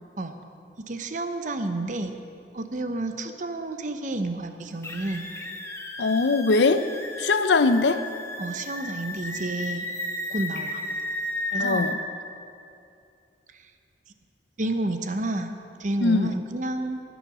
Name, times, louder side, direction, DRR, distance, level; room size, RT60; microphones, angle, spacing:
voice 1, 0.8-2.1 2.5-5.3 8.4-9.9 10.3-10.8 11.5-11.9 13.5-13.7 14.6-17.0, right 2 dB, 45° right, 7 dB, 0.8 m, -30 dB
sound 1, 4.8-12.0, left 1 dB, 15° left, 0.9 m, -33 dB
voice 2, 6.0-6.8 7.2-8.0 11.6-11.9 16.0-16.3, left 3 dB, 80° left, 11 dB, 0.6 m, -21 dB
19.0 x 7.2 x 6.2 m, 2.6 s
head